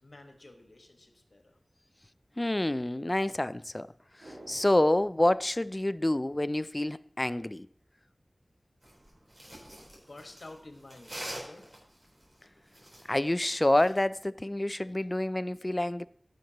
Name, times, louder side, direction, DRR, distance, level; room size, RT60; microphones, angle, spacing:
voice 1, 0.0-1.6 9.7-11.8, left 2 dB, 70° left, 1.4 m, -51 dB
voice 2, 2.4-3.9 4.5-7.7 13.1-16.1, left 1 dB, 30° left, 0.3 m, -27 dB
sound 1, 4.2-6.7 7.0-7.1, right 1 dB, 85° right, 2.9 m, -53 dB
sound 2, 8.8-14.0, right 1 dB, 50° right, 3.8 m, -45 dB
14.5 x 6.5 x 2.9 m
wide cardioid pair, 50°, 0 cm